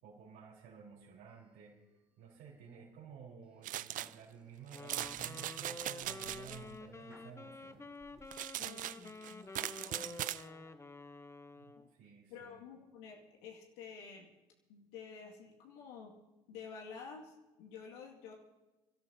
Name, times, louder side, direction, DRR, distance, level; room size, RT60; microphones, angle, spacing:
voice 1, 0.0-1.8 2.2-7.9 11.6-11.7 11.9-12.6, right 6 dB, 65° right, -7 dB, 4.3 m, -54 dB
sound 1, 1.3-2.0 2.4-2.8 3.4-7.4 7.9-8.3, right 1 dB, 5° right, 1.4 m, -63 dB
sound 2, 3.6-4.1 4.7-6.6 8.3-10.4, right 13 dB, 45° right, 0.4 m, -40 dB
Wind instrument woodwind instrument, 4.7-11.9, left 2 dB, 15° left, 0.9 m, -50 dB
voice 2, 8.6-10.7 11.8-11.9 12.3-14.3 14.7-16.1 16.5-18.3, left 6 dB, 75° left, 0 dB, 2.2 m, -51 dB
29.0 x 13.0 x 2.8 m, 1.1 s
hypercardioid pair, 65°, 19 cm